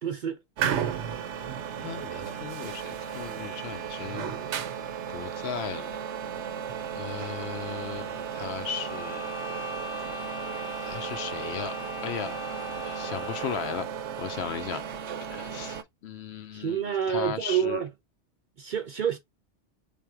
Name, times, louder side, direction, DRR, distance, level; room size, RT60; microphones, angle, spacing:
voice 1, 0.0-0.4 0.6-1.0 16.5-17.9 18.6-19.2, right 8 dB, 55° right, 0.6 m, -28 dB
sound 1, 0.6-15.8, right 8 dB, 75° right, 0.9 m, -35 dB
voice 2, 1.8-4.4 5.1-5.9 6.9-9.5 10.8-11.7 12.0-12.4 12.8-13.9 14.2-14.8 15.3-17.8, left 8 dB, 65° left, 0.8 m, -36 dB
sound 2, 8.7-14.0, left 3 dB, 45° left, 0.4 m, -40 dB
3.5 x 2.5 x 4.6 m
omnidirectional pair, 1.2 m